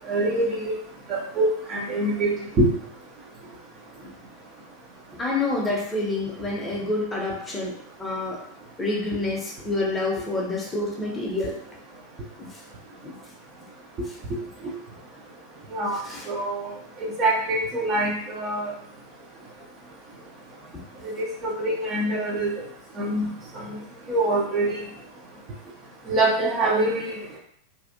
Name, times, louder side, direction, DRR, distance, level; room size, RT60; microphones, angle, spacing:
voice 1, 0.1-0.8 1.1-2.7 14.3-14.7 15.7-16.0 16.3-16.7 17.0-18.7 21.0-21.1 21.4-22.6 23.0-23.8 24.1-24.8 26.1-27.4, right 2 dB, 30° right, -3 dB, 0.6 m, -25 dB
voice 2, 5.2-8.4 8.8-11.6 12.4-12.6 13.0-13.1 15.9-16.3 20.7-20.8, left 2 dB, 10° left, -3 dB, 0.7 m, -28 dB
2.6 x 2.4 x 2.6 m, 0.64 s
figure-of-eight pair, 90°, 0 cm